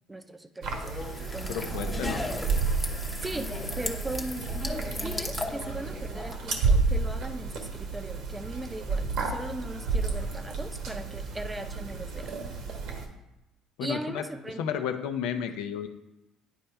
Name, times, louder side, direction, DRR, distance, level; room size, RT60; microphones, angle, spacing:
voice 1, 0.1-1.0 1.3-1.8 3.1-4.5 5.0-12.4 13.8-14.8 15.3-15.5, right 2 dB, 15° right, 8 dB, 0.7 m, -38 dB
sound 1, 0.6-13.1, right 4 dB, 70° right, 1.3 m, -31 dB
sound 2, 0.7-6.4, left 2 dB, 15° left, 0.9 m, -36 dB
voice 2, 1.5-2.2 13.8-14.2 14.6-15.9, left 8 dB, 80° left, 7 dB, 0.6 m, -32 dB
10.0 x 4.3 x 3.4 m, 0.96 s
supercardioid pair, 80°, 0 cm